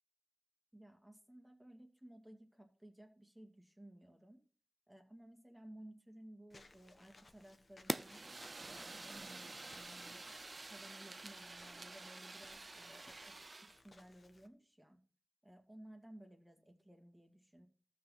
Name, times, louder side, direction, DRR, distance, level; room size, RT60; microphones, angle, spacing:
voice 1, 0.7-4.4 4.9-8.2 8.6-10.2 10.7-13.5 13.8-15.0 15.4-17.7, right 1 dB, 15° right, 4 dB, 2.1 m, -58 dB
Walk footsteps / Squeak, 6.5-14.5, left 3 dB, 50° left, 1.2 m, -64 dB
Fire, 7.9-13.8, right 3 dB, 45° right, 0.5 m, -47 dB
14.0 x 6.3 x 4.1 m, 0.40 s
wide cardioid pair, 65°, 0 cm